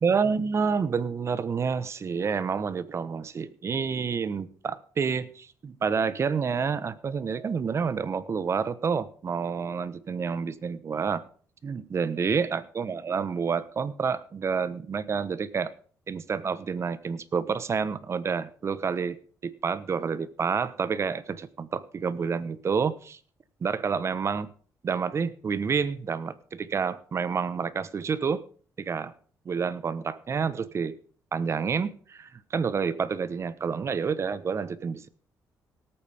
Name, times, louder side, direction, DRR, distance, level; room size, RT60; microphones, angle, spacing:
voice 1, 0.0-11.2 11.6-15.7 16.1-19.2 19.4-23.2 23.6-24.5 24.8-28.4 28.8-29.1 29.4-31.0 31.3-35.1, right 6 dB, 40° right, 15 dB, 1.1 m, -29 dB
18.0 x 8.8 x 3.5 m, 0.43 s
cardioid pair, 105°, 7 cm